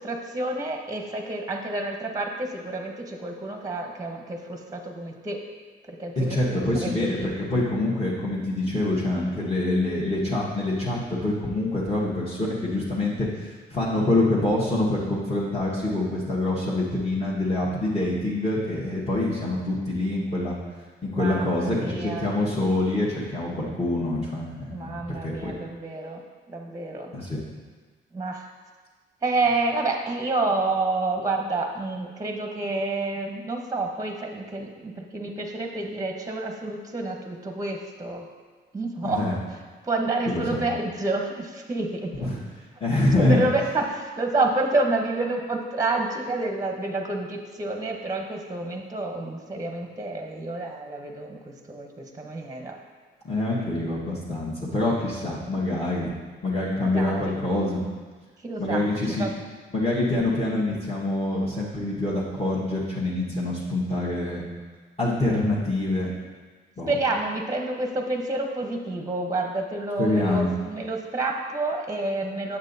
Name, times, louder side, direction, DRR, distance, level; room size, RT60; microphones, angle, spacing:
voice 1, 0.0-5.4 5.9-7.3 21.1-22.3 24.7-26.2 26.5-27.1 28.1-28.5 29.2-38.3 38.7-39.3 39.8-42.3 43.2-52.8 56.8-57.4 58.4-58.9 59.2-59.4 66.9-72.6, right 2 dB, 15° right, 3 dB, 0.8 m, -29 dB
voice 2, 6.2-20.5 21.0-24.9 25.2-25.5 27.1-27.4 39.0-39.3 40.3-40.6 42.2-42.4 42.8-43.4 53.2-56.1 56.4-57.8 58.6-59.3 59.7-64.4 65.0-66.1 66.8-66.9 70.0-70.5, left 2 dB, 30° left, -7 dB, 1.4 m, -25 dB
8.0 x 7.0 x 2.7 m, 1.4 s
cardioid pair, 90°, 20 cm